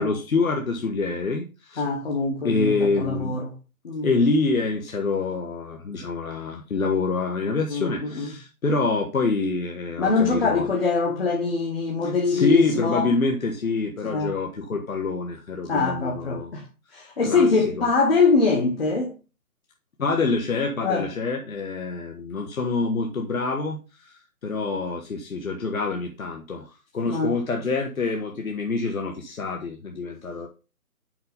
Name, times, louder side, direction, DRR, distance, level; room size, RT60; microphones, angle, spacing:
voice 1, 0.0-1.8 2.4-3.4 4.0-10.6 12.3-16.5 17.3-17.9 20.0-23.8 24.4-26.6 26.9-30.5, left 3 dB, 65° left, 1.5 m, -26 dB
voice 2, 1.8-3.5 3.8-4.1 7.7-8.3 10.0-13.1 14.0-14.4 15.7-16.6 16.9-19.1 20.8-21.1 27.1-27.4, left 4 dB, 40° left, 1.5 m, -23 dB
5.8 x 5.5 x 5.1 m
hypercardioid pair, 170°, 45 cm